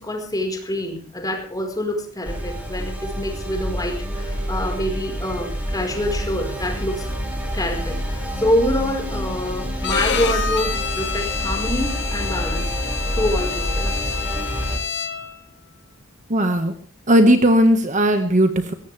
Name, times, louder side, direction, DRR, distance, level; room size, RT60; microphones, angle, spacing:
voice 1, 0.0-7.1 7.5-14.0, left 1 dB, 20° left, 3 dB, 4.8 m, -26 dB
sound 1, 2.2-14.8, equal, 5° right, 6.1 m, -27 dB
Bowed string instrument, 9.8-15.4, left 6 dB, 55° left, 2.3 m, -28 dB
voice 2, 16.3-16.7 17.1-18.7, equal, 35° right, 7 dB, 1.8 m, -16 dB
22.0 x 18.0 x 3.5 m, 0.42 s
head